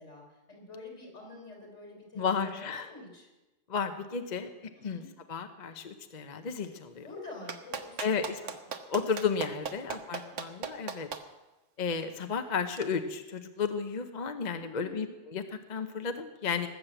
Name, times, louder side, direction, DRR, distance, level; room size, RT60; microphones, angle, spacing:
voice 1, 0.0-3.3 4.7-5.1 7.0-8.0 8.4-8.5 9.8-10.4 14.6-15.2, left 2 dB, 75° left, 0 dB, 4.7 m, -47 dB
voice 2, 2.2-2.9 3.7-5.0 5.3-7.1 8.0-8.4 8.9-11.1 11.8-16.7, left 6 dB, 40° left, 8 dB, 0.9 m, -33 dB
Clapping, 7.5-11.2 12.7-12.8, right 6 dB, 85° right, 1.4 m, -36 dB
19.0 x 7.5 x 8.0 m, 1.1 s
omnidirectional pair, 1.2 m